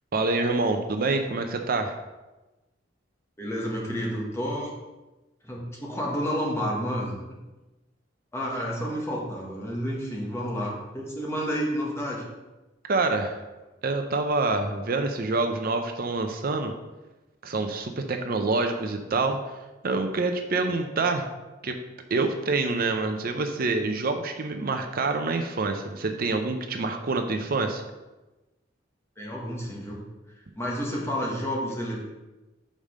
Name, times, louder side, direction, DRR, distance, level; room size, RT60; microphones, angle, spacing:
voice 1, 0.1-2.0 12.9-13.4 13.8-16.7 17.4-19.6 19.8-21.2 21.6-21.8 22.1-27.8, right 3 dB, 50° right, 5 dB, 0.6 m, -26 dB
voice 2, 3.4-4.7 5.4-7.1 8.3-12.2 29.2-30.0 30.5-32.0, equal, 15° left, -3 dB, 1.6 m, -30 dB
5.4 x 5.0 x 6.5 m, 1.1 s
head